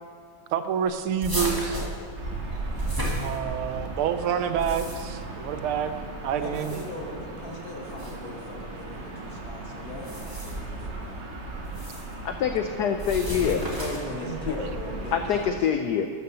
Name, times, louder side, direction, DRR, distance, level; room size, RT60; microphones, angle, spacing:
voice 1, 0.5-1.9 3.2-5.9 6.2-6.8 14.2-14.7, right 8 dB, 80° right, 10 dB, 1.5 m, -28 dB
sound 1, 1.2-3.8 4.4-5.2 6.4-7.1 7.9-8.1 9.9-10.7 11.6-12.1 13.0-14.2, right 1 dB, 10° right, 1.7 m, -33 dB
Gull seagull / Ocean, 2.1-15.5, right 2 dB, 35° right, 1.3 m, -38 dB
voice 2, 6.4-11.2 13.4-15.5, left 2 dB, 45° left, 1 dB, 1.7 m, -39 dB
voice 3, 12.2-13.6 15.1-16.1, left 8 dB, 80° left, 7 dB, 0.9 m, -25 dB
12.5 x 6.7 x 6.8 m, 2.4 s
omnidirectional pair, 2.4 m